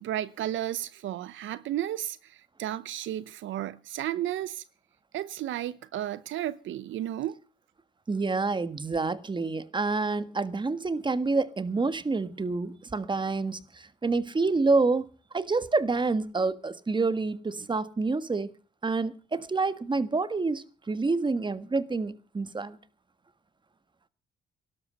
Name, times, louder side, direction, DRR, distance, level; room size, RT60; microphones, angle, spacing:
voice 1, 0.0-4.6 5.1-7.4, right 12 dB, 75° right, 0.7 m, -33 dB
voice 2, 8.1-15.1 15.3-18.5 18.8-22.8, right 3 dB, 25° right, 1.5 m, -28 dB
18.5 x 12.0 x 5.3 m
cardioid pair, 90°, 20 cm